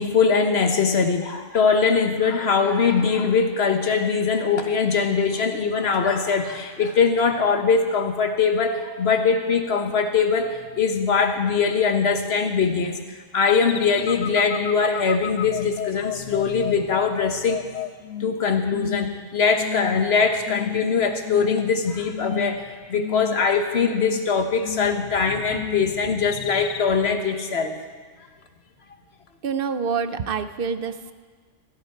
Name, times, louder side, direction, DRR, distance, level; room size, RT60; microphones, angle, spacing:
voice 1, 0.0-17.8 18.2-27.8, left 5 dB, 55° left, 6 dB, 1.4 m, -22 dB
sound 1, 13.4-18.4 18.7-19.2 19.6-20.1 20.4-20.9 21.2-21.8 22.1-22.6 22.9-23.5 23.8-24.3 24.6-25.1 25.5-25.9 26.3-26.8, left 11 dB, 85° left, 1.0 m, -32 dB
voice 2, 29.4-31.1, right 6 dB, 55° right, 11 dB, 0.8 m, -26 dB
16.0 x 16.0 x 4.6 m, 1.5 s
omnidirectional pair, 1.3 m